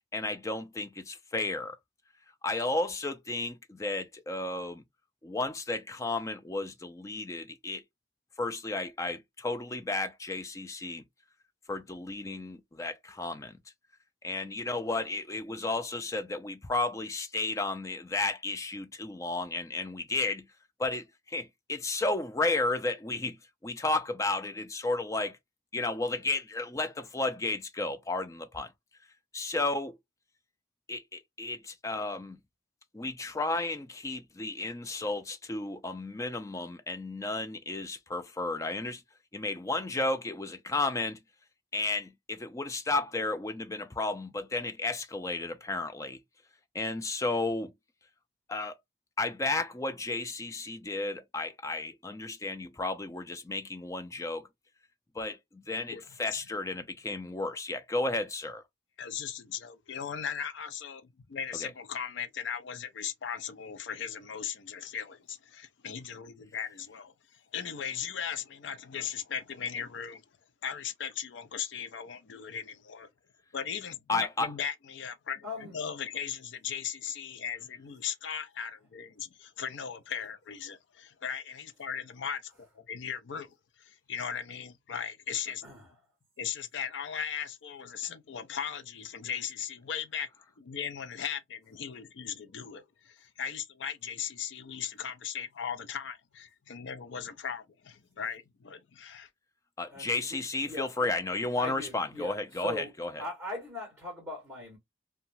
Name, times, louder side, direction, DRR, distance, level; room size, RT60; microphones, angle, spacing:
voice 1, 0.1-1.8 2.4-4.8 5.2-7.8 8.4-11.0 11.7-13.6 14.2-20.5 20.8-23.4 23.6-25.4 25.7-28.7 29.3-30.0 30.9-32.4 32.9-39.0 39.3-41.2 41.7-46.2 46.7-47.7 48.5-48.8 49.2-54.5 55.2-58.6 61.6-61.7 74.1-74.5 99.8-103.2, left 2 dB, 15° left, 0.3 m, -33 dB
voice 2, 59.0-70.2 70.6-73.1 73.5-85.7 86.4-90.3 90.6-99.3, left 7 dB, 80° left, 0.5 m, -38 dB
voice 3, 75.4-75.7 85.6-85.8 99.9-100.1 100.6-101.1 101.6-102.9 103.2-104.8, left 2 dB, 10° right, 1.4 m, -39 dB
2.8 x 2.2 x 2.6 m
head